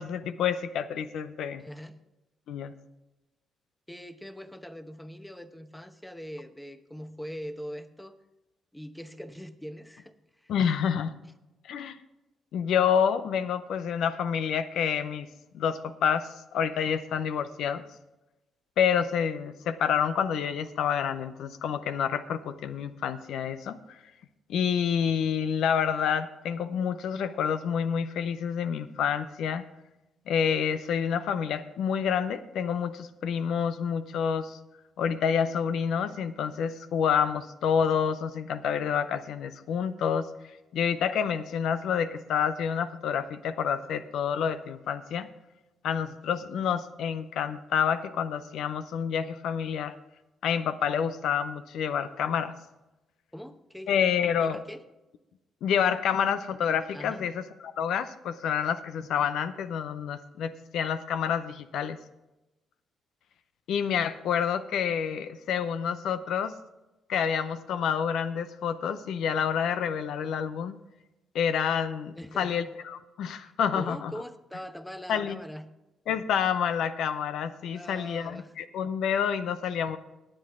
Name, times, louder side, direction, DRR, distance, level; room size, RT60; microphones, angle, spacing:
voice 1, 0.0-1.6 2.5-2.7 10.5-11.1 11.6-12.0 12.5-15.3 15.5-17.8 18.8-24.0 24.5-29.6 30.3-34.6 35.0-40.3 40.7-45.3 45.8-49.9 50.4-52.5 53.9-54.6 55.6-62.0 63.7-66.5 67.1-70.8 71.3-74.1 75.1-75.4 76.1-80.0, left 7 dB, 75° left, 12 dB, 0.5 m, -28 dB
voice 2, 1.6-2.0 3.9-8.2 8.7-10.5 53.3-54.1 54.4-54.8 56.9-57.3 72.1-72.7 73.4-75.7 77.7-78.5, equal, 5° left, 10 dB, 0.9 m, -42 dB
19.0 x 7.7 x 3.6 m, 0.99 s
supercardioid pair, 70°, 0 cm